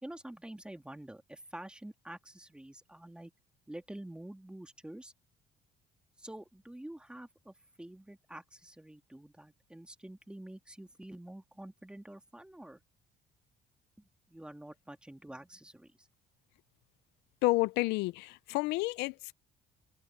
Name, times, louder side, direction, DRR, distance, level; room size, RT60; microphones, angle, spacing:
voice 1, 0.0-3.3 3.7-5.1 6.2-12.8 14.0-16.1, right 1 dB, 5° right, 2.6 m, -48 dB
voice 2, 17.4-19.3, left 21 dB, 90° left, 0.4 m, -30 dB
cardioid pair, 110°, 17 cm